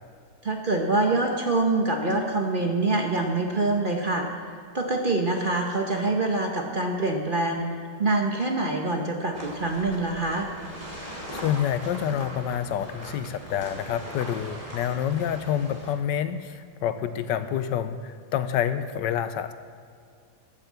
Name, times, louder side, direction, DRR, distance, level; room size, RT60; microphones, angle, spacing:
voice 1, 0.4-4.4 4.7-7.6 8.0-10.5, right 2 dB, 35° right, 2 dB, 0.9 m, -25 dB
sound 1, 9.3-15.9, right 1 dB, 20° left, 2.2 m, -40 dB
voice 2, 11.3-19.5, left 9 dB, 80° left, 11 dB, 1.3 m, -28 dB
13.0 x 6.7 x 7.4 m, 2.3 s
omnidirectional pair, 1.9 m